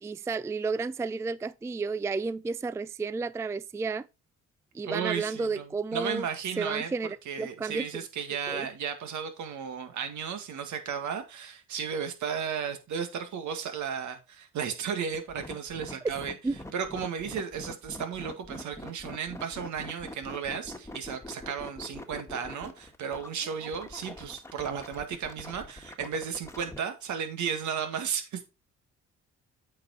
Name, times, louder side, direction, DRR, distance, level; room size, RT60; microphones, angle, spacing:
voice 1, 0.0-4.1 4.7-6.3 6.6-8.1 8.5-8.7 16.4-16.6, right 4 dB, 10° right, 0.3 m, -32 dB
voice 2, 4.8-6.9 7.3-16.3 16.7-28.4, right 7 dB, 75° right, 2.0 m, -34 dB
sound 1, 15.1-26.8, left 1 dB, 10° left, 1.5 m, -43 dB
8.6 x 5.2 x 4.1 m
cardioid pair, 90°, 30 cm